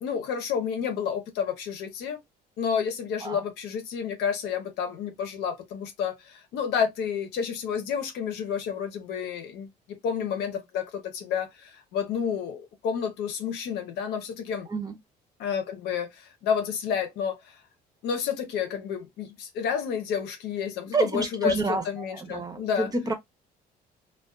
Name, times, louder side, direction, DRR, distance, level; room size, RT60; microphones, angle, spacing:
voice 1, 0.0-2.2 2.6-14.7 15.4-17.6 18.0-22.9, left 7 dB, 85° left, 0.7 m, -30 dB
voice 2, 14.7-15.0 20.9-23.1, right 3 dB, 20° right, 0.7 m, -29 dB
2.3 x 2.3 x 2.3 m
cardioid pair, 110°, 17 cm